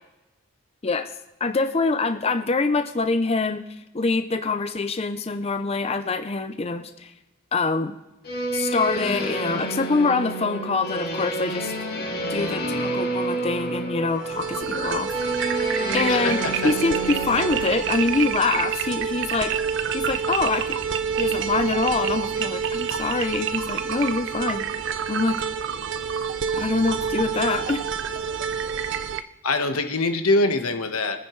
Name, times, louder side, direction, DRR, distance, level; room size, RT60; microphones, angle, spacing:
voice 1, 1.4-3.6 3.9-7.1 7.5-7.9 8.5-11.7 12.3-15.1 15.9-19.6 19.9-20.8 21.2-24.7 25.1-25.4 26.5-27.8, left 3 dB, 30° left, 8 dB, 0.5 m, -25 dB
sound 1, 8.2-17.7, right 1 dB, 50° left, 2.5 m, -29 dB
sound 2, 14.1-29.2, right 7 dB, 60° right, 0.6 m, -27 dB
voice 2, 29.4-31.2, left 2 dB, 90° left, 6 dB, 1.3 m, -23 dB
24.5 x 9.8 x 3.2 m, 0.98 s
head